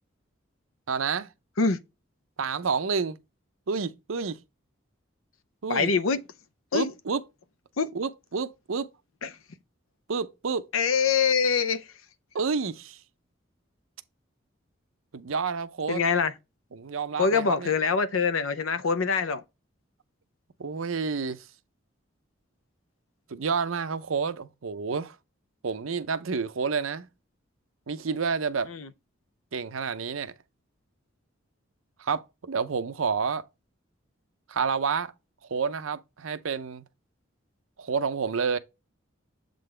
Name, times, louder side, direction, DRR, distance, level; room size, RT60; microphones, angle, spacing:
voice 1, 0.9-1.3 2.4-3.2 3.7-4.4 5.6-5.9 6.7-7.2 7.9-8.9 10.1-10.7 12.3-13.0 15.1-16.0 16.7-17.7 20.6-21.4 23.3-25.1 25.6-27.1 27.9-28.7 29.5-30.3 32.0-33.4 34.5-35.1 35.5-36.8 37.8-38.6, right 5 dB, 85° right, 0.6 m, -29 dB
voice 2, 5.7-6.2 6.7-6.9 7.8-7.9 9.2-9.4 10.7-11.9 15.9-16.3 17.2-19.4 28.7-28.9, left 5 dB, 90° left, 0.7 m, -24 dB
7.5 x 3.9 x 3.3 m
head